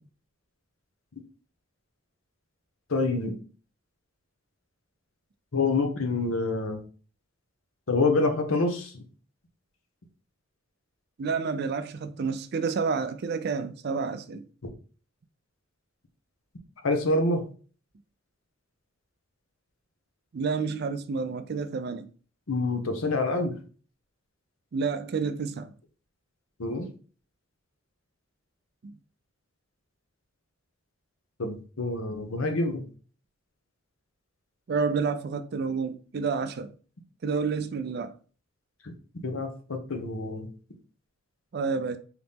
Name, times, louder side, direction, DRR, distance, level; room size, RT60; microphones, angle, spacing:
voice 1, 2.9-3.4 5.5-6.8 7.9-9.0 14.6-14.7 16.8-17.4 22.5-23.5 26.6-26.9 31.4-32.8 38.8-38.9 39.2-40.5, left 3 dB, 85° left, 0.9 m, -27 dB
voice 2, 11.2-14.4 20.3-22.1 24.7-25.7 28.8-28.9 34.7-36.7 37.2-38.1 41.5-42.0, right 5 dB, 50° right, 0.4 m, -29 dB
4.0 x 2.9 x 3.5 m
head